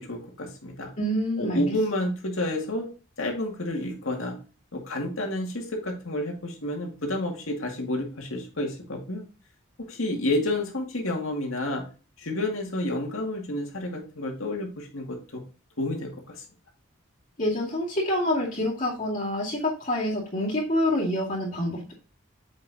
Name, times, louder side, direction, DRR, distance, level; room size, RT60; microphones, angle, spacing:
voice 1, 0.0-0.9 1.4-2.9 3.2-4.4 4.7-9.3 9.9-11.8 12.2-15.4 15.8-16.4, left 1 dB, 85° left, 1 dB, 2.1 m, -30 dB
voice 2, 1.0-1.7 17.4-21.9, left 1 dB, 40° left, -6 dB, 2.3 m, -27 dB
7.4 x 5.8 x 2.7 m, 0.34 s
head